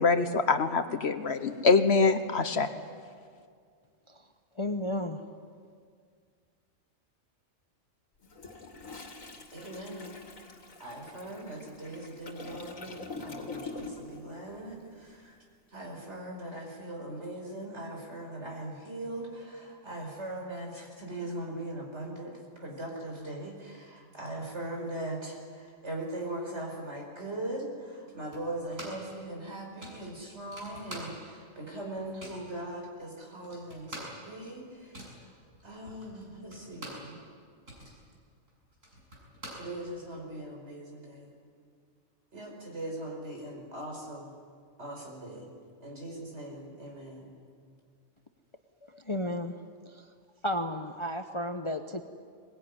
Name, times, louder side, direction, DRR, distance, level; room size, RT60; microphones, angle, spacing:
voice 1, 0.0-2.7, left 4 dB, 55° left, 9 dB, 1.3 m, -24 dB
voice 2, 4.5-5.2 48.8-49.5 49.8-50.1 50.4-52.0, left 1 dB, 25° left, 6 dB, 0.9 m, -33 dB
Toilet flush, 8.2-14.2 14.5-14.7, left 3 dB, 90° left, 2.6 m, -44 dB
voice 3, 9.5-10.1 10.8-15.4 15.7-34.9 35.6-37.2 39.6-41.3 42.3-44.3 44.8-45.5 45.8-47.4, right 1 dB, 60° right, 1 dB, 5.3 m, -40 dB
sound 1, 28.3-29.1 29.4-29.5 29.8-31.5 31.8-32.5 33.0-33.1 33.3-37.1 37.5-40.2, right 1 dB, 80° right, 7.6 m, -46 dB
23.0 x 20.5 x 9.8 m, 2.1 s
omnidirectional pair, 1.3 m